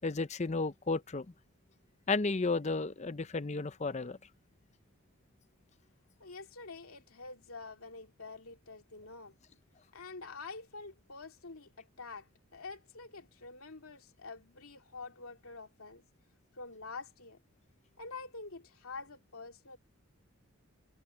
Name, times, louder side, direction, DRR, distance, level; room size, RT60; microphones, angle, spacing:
voice 1, 0.0-1.3 2.1-4.2, left 3 dB, 30° left, 0.6 m, -33 dB
voice 2, 6.2-9.3 9.9-16.0 16.5-17.4 18.0-19.8, left 3 dB, 80° left, 2.5 m, -47 dB
head